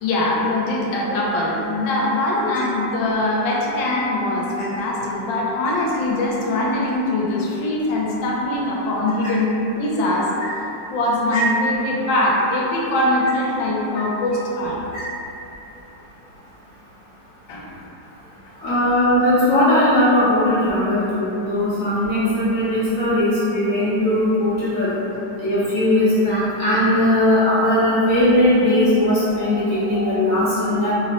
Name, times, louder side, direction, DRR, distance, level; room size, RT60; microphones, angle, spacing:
voice 1, 0.0-10.3 10.9-14.8 17.5-17.7 18.7-18.8 21.3-21.4 24.8-24.9 29.4-30.3, left 1 dB, 90° left, -4 dB, 1.3 m, -22 dB
voice 2, 18.6-24.9 25.4-30.9, left 1 dB, 60° left, -10 dB, 0.9 m, -18 dB
4.2 x 2.0 x 2.8 m, 3.0 s
omnidirectional pair, 2.0 m